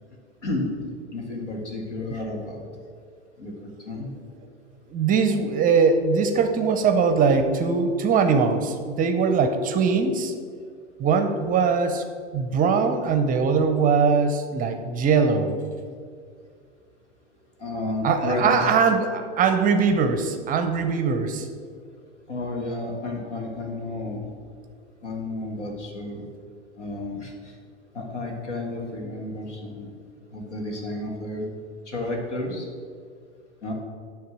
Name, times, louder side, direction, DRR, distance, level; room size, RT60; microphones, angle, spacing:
voice 1, 0.4-0.7 1.1-2.7 3.4-4.1 17.6-18.7 22.3-24.3 25.0-26.3 26.8-27.5 27.9-29.9 30.3-31.5 31.9-32.7 33.6-33.7, left 2 dB, 85° left, 0 dB, 1.9 m, -31 dB
voice 2, 4.9-10.3 11.0-12.0 12.3-15.5 18.0-21.5, right 5 dB, 25° right, 7 dB, 0.6 m, -21 dB
9.5 x 3.5 x 6.0 m, 2.1 s
hypercardioid pair, 105°, 35 cm